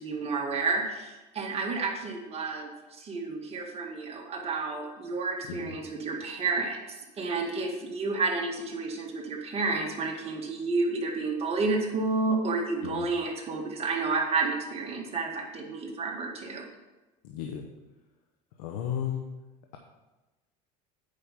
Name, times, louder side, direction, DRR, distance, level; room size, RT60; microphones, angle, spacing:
voice 1, 0.0-16.6, right 3 dB, 35° right, 0 dB, 2.0 m, -30 dB
voice 2, 17.2-17.7 18.6-19.2, left 9 dB, 90° left, 3 dB, 0.9 m, -34 dB
8.8 x 5.1 x 5.8 m, 1.1 s
supercardioid pair, 105°, 18 cm